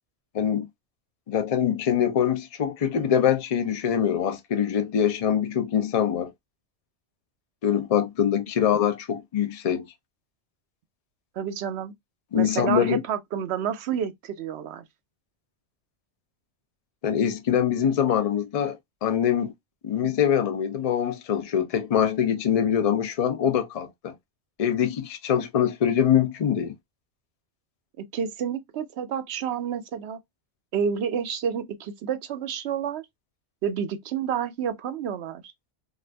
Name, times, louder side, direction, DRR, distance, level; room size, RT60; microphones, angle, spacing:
voice 1, 0.3-0.7 1.3-6.3 7.6-9.8 12.3-13.0 17.0-19.5 19.8-24.1 24.6-26.7, left 9 dB, 45° left, 0.5 m, -24 dB
voice 2, 11.4-11.9 12.3-14.8 28.0-30.2 30.7-33.0 33.6-35.4, right 8 dB, 75° right, 0.8 m, -29 dB
2.5 x 2.4 x 3.2 m
omnidirectional pair, 1.2 m